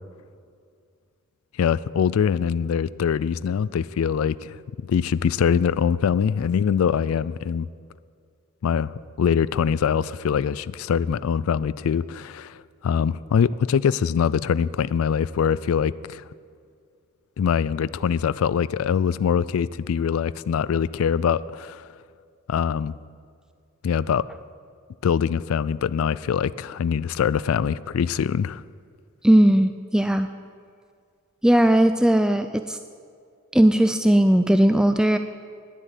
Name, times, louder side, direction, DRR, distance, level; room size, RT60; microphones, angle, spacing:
voice 1, 1.6-4.6 4.9-7.7 8.6-16.2 17.4-21.9 22.5-22.9 23.8-24.2 25.0-28.6, left 7 dB, 80° left, 18 dB, 0.3 m, -23 dB
voice 2, 29.2-30.3 31.4-32.8 33.5-35.2, right 1 dB, 5° right, 9 dB, 0.3 m, -18 dB
10.5 x 9.9 x 9.1 m, 2.2 s
head